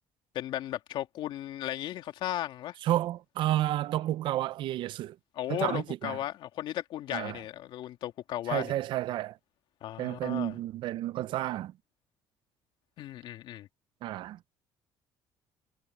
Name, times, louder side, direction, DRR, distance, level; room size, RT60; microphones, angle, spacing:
voice 1, 0.3-2.8 5.4-8.7 9.8-10.5 13.0-13.7, left 13 dB, 70° left, 2.6 m, -35 dB
voice 2, 2.8-5.2 5.5-6.2 7.1-7.4 8.5-9.4 10.0-11.7 14.0-14.4, right 14 dB, 65° right, 0.6 m, -31 dB
supercardioid pair, 90°, 9 cm